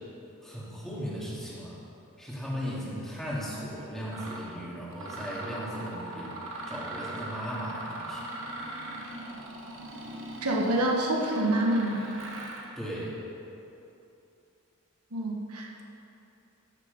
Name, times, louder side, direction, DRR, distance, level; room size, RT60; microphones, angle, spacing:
voice 1, 0.4-1.8 2.2-6.4 6.7-8.3 12.8-13.2, equal, ahead, -7 dB, 2.4 m, -37 dB
Mechanisms, 3.4-3.6 4.1-4.5 4.9-12.7, right 1 dB, 60° right, 1.5 m, -40 dB
voice 2, 10.4-12.0 15.1-15.8, right 1 dB, 85° right, 0 dB, 1.4 m, -27 dB
14.0 x 7.1 x 5.3 m, 2.9 s
head